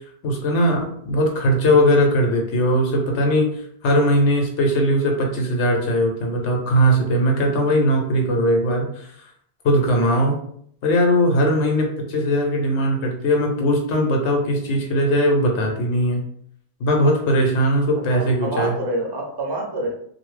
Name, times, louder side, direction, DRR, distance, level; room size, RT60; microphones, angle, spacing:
voice 1, 0.2-9.1 9.6-10.4 10.8-16.2 16.8-18.7, equal, 90° left, 1 dB, 1.1 m, -19 dB
voice 2, 18.0-19.9, right 1 dB, 30° right, 0 dB, 0.5 m, -27 dB
2.7 x 2.4 x 3.1 m, 0.66 s
omnidirectional pair, 1.1 m